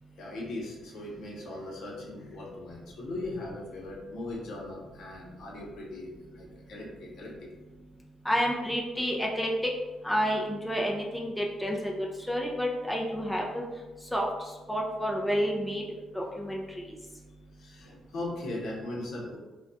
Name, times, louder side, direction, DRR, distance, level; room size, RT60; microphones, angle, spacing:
voice 1, 0.2-7.3 17.6-19.4, left 2 dB, 70° left, -2 dB, 0.8 m, -39 dB
voice 2, 8.2-9.5 10.0-13.6 14.1-15.8 16.1-16.8, equal, 5° left, -2 dB, 0.4 m, -30 dB
2.3 x 2.3 x 3.8 m, 1.2 s
cardioid pair, 90°, 0 cm